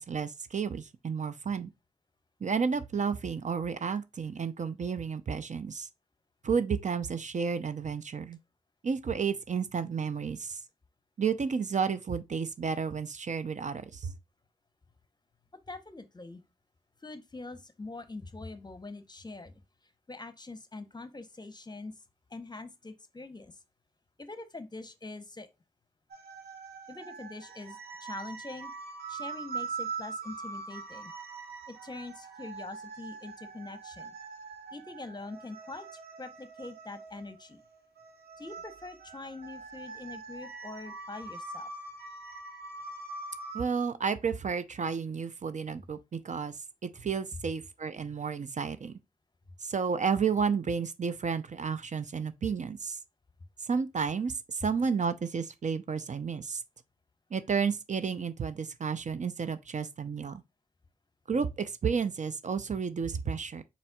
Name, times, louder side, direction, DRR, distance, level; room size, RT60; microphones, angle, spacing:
voice 1, 0.0-1.7 2.4-5.9 6.4-8.4 8.8-10.6 11.2-14.1 43.5-46.6 46.8-48.9 49.6-53.0 53.6-56.6 57.3-60.4 61.3-63.6, right 6 dB, 50° right, 0.5 m, -31 dB
voice 2, 15.7-16.4 17.0-19.6 20.1-21.9 22.3-23.6 24.2-25.5 26.9-28.7 29.1-31.1 31.7-34.1 34.7-37.6 38.4-41.7, left 3 dB, 25° left, 0.8 m, -44 dB
sound 1, 26.1-43.6, right 4 dB, 85° right, 0.9 m, -43 dB
4.2 x 4.1 x 2.3 m
cardioid pair, 45°, 16 cm